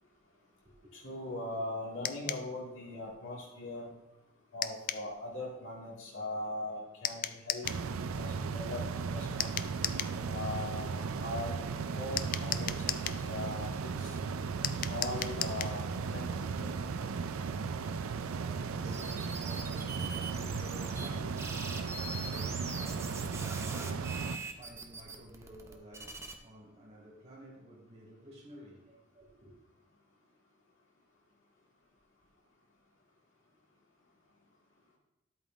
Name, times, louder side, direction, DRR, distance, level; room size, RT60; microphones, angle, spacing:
voice 1, 0.9-3.9 4.5-7.7 8.2-9.5 10.3-11.6 11.9-14.2 14.9-16.7, left 2 dB, 70° left, 2.1 m, -40 dB
sound 1, 2.0-2.5 4.6-5.1 7.0-7.8 9.4-10.2 12.2-13.2 14.6-15.8, left 11 dB, 40° left, 0.3 m, -36 dB
sound 2, 7.6-24.4, right 5 dB, 90° right, 0.5 m, -36 dB
voice 2, 17.5-29.5, right 1 dB, 35° right, 2.4 m, -52 dB
sound 3, 18.9-21.1 21.4-26.3, right 3 dB, 15° right, 0.6 m, -43 dB
10.5 x 8.2 x 2.6 m
head